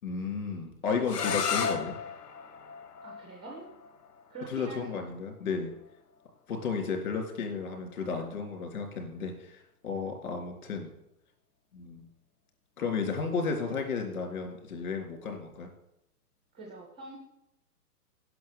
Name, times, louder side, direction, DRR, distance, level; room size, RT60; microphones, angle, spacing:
voice 1, 0.0-2.0 4.5-5.7 6.5-10.9 11.7-12.1 12.8-15.7, left 5 dB, 65° left, 2 dB, 3.8 m, -33 dB
sound 1, 1.0-6.8, left 6 dB, 85° left, 1.6 m, -36 dB
voice 2, 3.0-3.7 4.3-4.8 16.5-17.2, right 3 dB, 5° right, -1 dB, 0.4 m, -44 dB
10.0 x 6.3 x 7.4 m, 0.83 s
hypercardioid pair, 165°, 46 cm